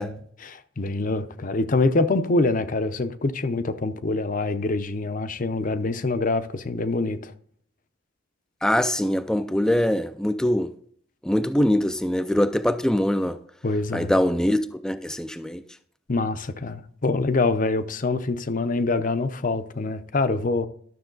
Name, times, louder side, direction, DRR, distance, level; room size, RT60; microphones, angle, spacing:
voice 1, 0.0-7.3 13.6-14.1 16.1-20.7, left 3 dB, 45° left, 0.7 m, -25 dB
voice 2, 8.6-10.7 11.2-13.4 13.9-15.6, left 1 dB, 5° left, 0.3 m, -23 dB
12.0 x 7.0 x 3.9 m
head